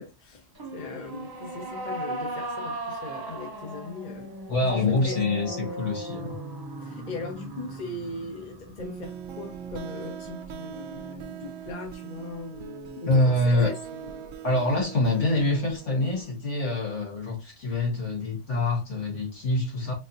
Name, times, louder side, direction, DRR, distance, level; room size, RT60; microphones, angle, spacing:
voice 1, 0.0-4.3 4.7-5.2 6.8-14.2, left 3 dB, 40° left, 1.0 m, -39 dB
sound 1, 0.6-9.9, right 1 dB, 40° right, 0.3 m, -37 dB
voice 2, 4.5-6.4 13.1-13.7 14.4-19.9, left 2 dB, 75° left, 1.9 m, -25 dB
sound 2, 8.8-16.3, right 8 dB, 85° right, 1.0 m, -41 dB
4.2 x 2.8 x 2.5 m
omnidirectional pair, 1.3 m